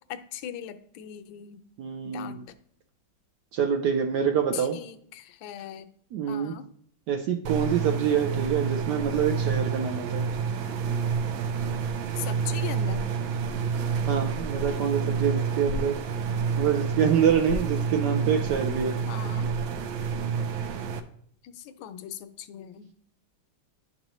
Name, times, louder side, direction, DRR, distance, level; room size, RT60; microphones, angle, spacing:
voice 1, 0.1-1.6 2.0-2.4 4.5-5.9 6.3-6.6 12.2-13.1 19.1-19.5 21.4-22.9, left 10 dB, 75° left, 10 dB, 1.3 m, -39 dB
voice 2, 1.8-2.4 3.5-4.8 6.1-6.5 7.1-10.3 14.0-16.0 16.6-19.0, right 7 dB, 70° right, 3 dB, 1.1 m, -26 dB
sound 1, 7.5-21.0, right 6 dB, 90° right, 1.4 m, -29 dB
11.0 x 4.0 x 3.0 m, 0.63 s
omnidirectional pair, 2.2 m